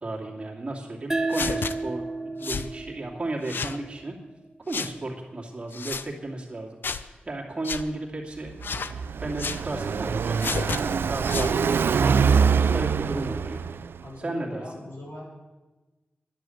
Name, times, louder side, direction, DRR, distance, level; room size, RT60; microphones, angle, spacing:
voice 1, 0.0-2.1 2.4-4.2 4.7-8.9 9.2-10.4 10.6-12.2 12.7-13.6 14.2-14.8, right 2 dB, 30° right, -1 dB, 2.4 m, -34 dB
sound 1, 1.1-4.3, right 2 dB, 15° right, 0.9 m, -32 dB
sound 2, 1.3-1.7 2.4-2.7 3.4-3.8 4.7-4.9 5.7-6.1 6.8-7.1 7.6-7.8 8.6-8.9 9.4-9.6 10.4-10.8 11.3-11.6, left 5 dB, 70° left, 0.6 m, -31 dB
Car passing by, 8.5-14.0, right 6 dB, 85° right, 0.4 m, -24 dB
voice 2, 14.0-15.3, left 1 dB, 85° left, -3 dB, 6.2 m, -39 dB
11.5 x 10.5 x 7.8 m, 1.2 s
wide cardioid pair, 130°, 4 cm